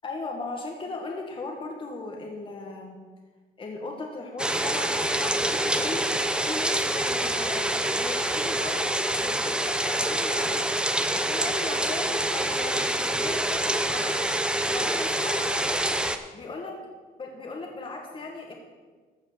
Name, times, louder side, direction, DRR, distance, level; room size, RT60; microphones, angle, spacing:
voice 1, 0.0-3.0 3.6-7.7 7.9-10.8 11.1-15.8 16.3-16.7 17.2-18.5, left 3 dB, 30° left, 1 dB, 1.7 m, -37 dB
sound 1, 4.4-16.2, right 1 dB, 5° right, 0.7 m, -26 dB
14.5 x 5.6 x 6.8 m, 1.4 s
cardioid pair, 110°, 17 cm